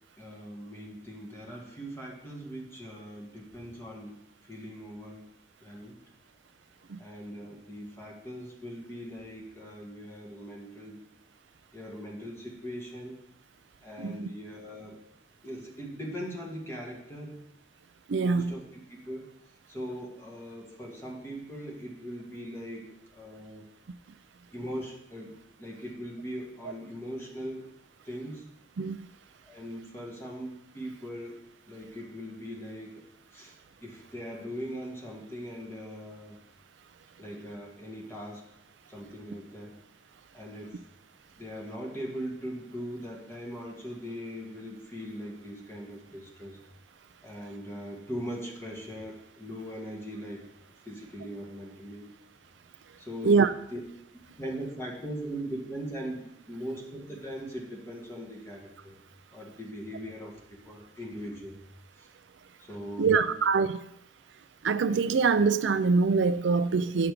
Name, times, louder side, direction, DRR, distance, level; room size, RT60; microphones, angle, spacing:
voice 1, 0.2-4.2 4.5-5.2 5.6-6.0 7.0-11.0 11.7-13.2 13.8-15.0 15.4-17.5 18.2-19.3 19.7-23.7 24.5-27.7 28.1-28.5 29.4-31.4 31.7-33.0 33.3-33.5 33.8-36.4 37.2-38.5 38.9-39.8 40.3-40.8 41.4-46.6 47.2-50.5 50.9-52.1 53.0-53.8 54.1-59.0 59.3-61.6 62.7-63.4, equal, 15° left, 1.9 m, -40 dB
voice 2, 18.1-18.5 28.8-29.0 53.2-53.5 63.0-63.8 64.6-67.1, right 4 dB, 85° right, 0.5 m, -24 dB
9.4 x 6.0 x 5.0 m
head